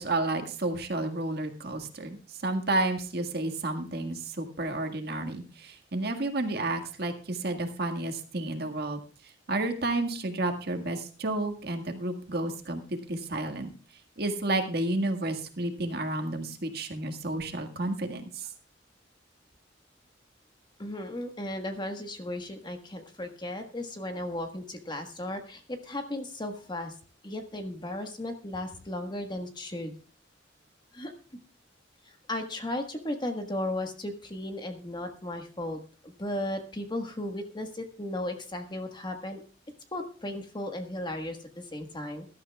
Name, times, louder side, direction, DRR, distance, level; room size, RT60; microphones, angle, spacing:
voice 1, 0.0-9.0 9.2-13.7 14.2-18.5, right 2 dB, 55° right, 5 dB, 1.8 m, -31 dB
voice 2, 20.8-26.9 27.2-29.9 30.9-31.1 32.0-39.4 39.9-42.3, left 1 dB, 25° left, 5 dB, 1.4 m, -35 dB
21.0 x 12.5 x 2.3 m, 0.37 s
head